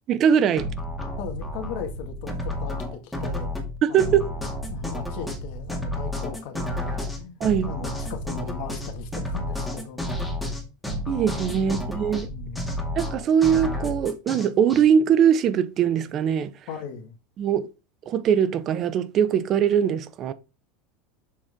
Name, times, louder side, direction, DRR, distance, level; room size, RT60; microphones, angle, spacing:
voice 1, 0.1-0.7 3.8-4.4 7.4-7.7 11.1-12.3 13.0-16.5 17.4-17.7 18.1-20.3, right 8 dB, 45° right, 0.7 m, -21 dB
sound 1, 0.6-14.8, left 1 dB, 5° left, 2.1 m, -31 dB
voice 2, 1.2-3.5 3.9-4.3 4.7-10.2 11.5-11.8 12.3-12.8 16.7-17.2, left 6 dB, 65° left, 1.8 m, -38 dB
7.3 x 4.5 x 3.6 m
hypercardioid pair, 95°, 0 cm